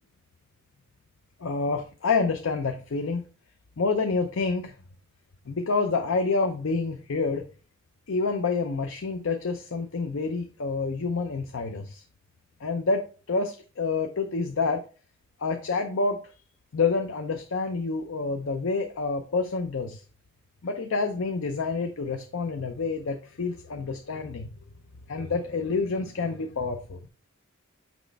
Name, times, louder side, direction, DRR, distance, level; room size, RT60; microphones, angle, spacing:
voice 1, 1.4-3.2 3.8-4.7 5.5-7.5 8.1-12.0 12.6-14.8 15.4-16.2 16.7-20.0 20.6-24.5 25.1-27.1, left 4 dB, 65° left, 5 dB, 0.6 m, -28 dB
6.1 x 5.0 x 3.3 m, 0.37 s
head